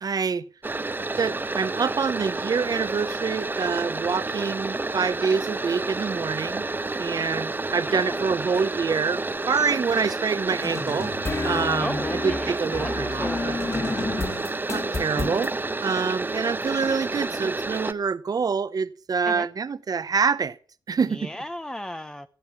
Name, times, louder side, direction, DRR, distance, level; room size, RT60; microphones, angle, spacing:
voice 1, 0.0-0.4 1.2-6.7 7.0-11.1 11.4-13.5 14.7-15.5 15.8-20.6 20.9-21.3, right 5 dB, 55° right, 0.9 m, -26 dB
sound 1, 0.6-17.9, right 2 dB, 25° right, 0.9 m, -30 dB
voice 2, 7.9-8.3 11.8-13.6 19.2-19.5 21.0-22.3, left 1 dB, 10° left, 0.8 m, -35 dB
sound 2, 10.6-15.5, left 3 dB, 35° left, 2.3 m, -30 dB
16.5 x 7.8 x 7.2 m
cardioid pair, 60°, 8 cm